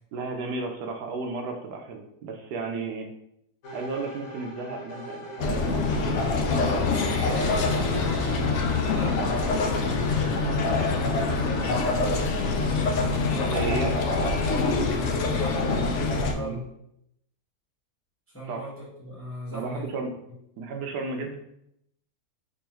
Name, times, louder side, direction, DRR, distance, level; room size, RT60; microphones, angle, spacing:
voice 1, 0.1-3.1 3.7-5.8 13.3-14.1 16.3-16.6 18.5-18.7 19.5-20.1 20.6-21.4, right 3 dB, 80° right, 4 dB, 1.2 m, -33 dB
sound 1, 3.6-15.4, equal, 60° left, 1.1 m, -45 dB
sound 2, 5.4-16.3, left 3 dB, 75° left, 0.6 m, -25 dB
voice 2, 6.7-13.8 14.9-16.7 18.3-19.9 20.3-20.4, equal, 10° left, -6 dB, 0.6 m, -38 dB
3.6 x 3.0 x 2.9 m, 0.77 s
omnidirectional pair, 1.8 m